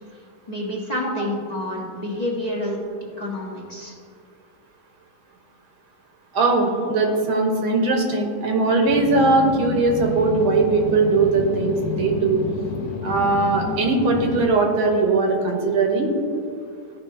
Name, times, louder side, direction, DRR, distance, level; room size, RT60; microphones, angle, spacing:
voice 1, 0.5-2.8 3.2-3.9, left 1 dB, 25° left, -4 dB, 1.0 m, -28 dB
voice 2, 6.3-12.4 13.0-16.1, right 3 dB, 80° right, 2 dB, 1.8 m, -20 dB
sound 1, 8.9-14.5, left 7 dB, 70° left, 1.2 m, -30 dB
14.0 x 5.3 x 2.7 m, 2.2 s
omnidirectional pair, 2.2 m